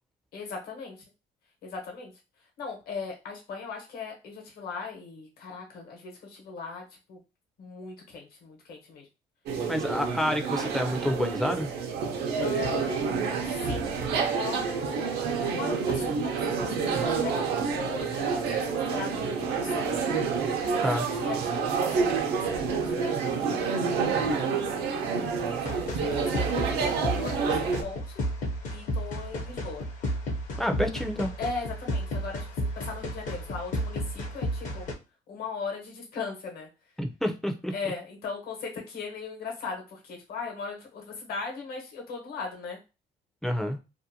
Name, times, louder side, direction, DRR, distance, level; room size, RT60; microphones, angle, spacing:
voice 1, 0.3-1.0 1.6-2.1 2.6-7.2 7.6-9.1 12.4-13.1 13.5-20.1 20.9-25.1 25.5-25.8 26.1-28.2 28.7-29.9 31.4-34.8 35.3-36.7 37.7-42.8, left 5 dB, 65° left, 0 dB, 1.0 m, -39 dB
sound 1, 9.5-27.8, right 5 dB, 80° right, 0.6 m, -28 dB
voice 2, 9.7-11.7 20.8-21.1 30.6-31.3 37.0-37.7 43.4-43.8, left 1 dB, ahead, 4 dB, 0.4 m, -28 dB
sound 2, 25.7-34.9, equal, 50° left, 0.6 m, -33 dB
2.6 x 2.1 x 2.7 m, 0.29 s
cardioid pair, 110°, 17 cm